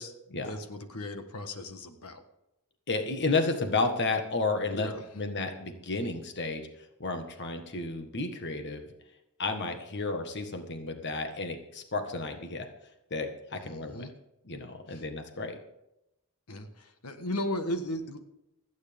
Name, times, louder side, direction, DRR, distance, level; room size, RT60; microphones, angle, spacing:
voice 1, 0.0-2.2 4.7-5.0 13.6-14.1 14.9-15.0 16.5-18.2, left 1 dB, 85° left, 7 dB, 1.5 m, -36 dB
voice 2, 2.9-4.9 5.1-8.9 9.4-12.7 13.1-14.1 14.4-15.6, left 3 dB, 50° left, 6 dB, 1.5 m, -32 dB
28.5 x 9.5 x 3.6 m, 0.88 s
head